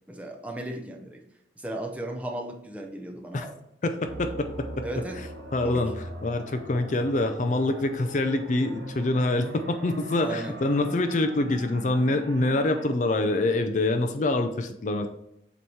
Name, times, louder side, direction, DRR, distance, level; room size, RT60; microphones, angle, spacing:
voice 1, 0.1-1.2 1.6-3.5 4.8-5.2 5.6-5.8 10.2-10.6, right 1 dB, 10° right, 1 dB, 0.7 m, -35 dB
voice 2, 3.8-4.8 5.5-5.9 6.2-15.1, left 2 dB, 45° left, 7 dB, 0.4 m, -25 dB
sound 1, 4.1-12.9, right 1 dB, 85° right, 1.4 m, -41 dB
sound 2, 6.9-11.2, right 2 dB, 85° left, 1.4 m, -51 dB
7.7 x 3.0 x 4.2 m, 0.79 s
head